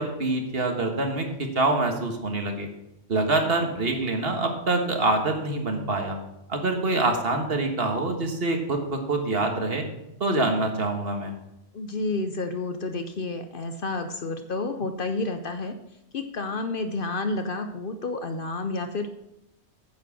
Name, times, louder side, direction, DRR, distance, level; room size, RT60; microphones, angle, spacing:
voice 1, 0.0-2.7 3.1-6.2 6.5-9.8 10.2-11.3, right 2 dB, 55° right, 4 dB, 1.7 m, -25 dB
voice 2, 11.7-15.8 16.1-19.1, left 3 dB, 55° left, 8 dB, 0.8 m, -30 dB
9.4 x 7.4 x 5.9 m, 0.86 s
omnidirectional pair, 1.2 m